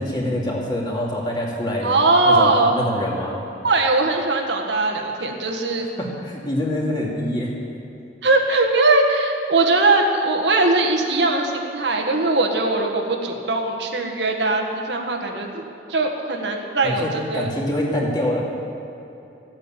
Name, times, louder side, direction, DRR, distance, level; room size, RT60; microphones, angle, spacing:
voice 1, 0.0-3.4 6.0-7.5 16.8-18.4, left 1 dB, 25° left, -3 dB, 2.5 m, -25 dB
voice 2, 1.8-2.7 3.6-5.8 8.2-15.6 15.9-17.5, right 2 dB, 80° right, 1 dB, 1.7 m, -20 dB
15.0 x 8.8 x 8.9 m, 2.9 s
head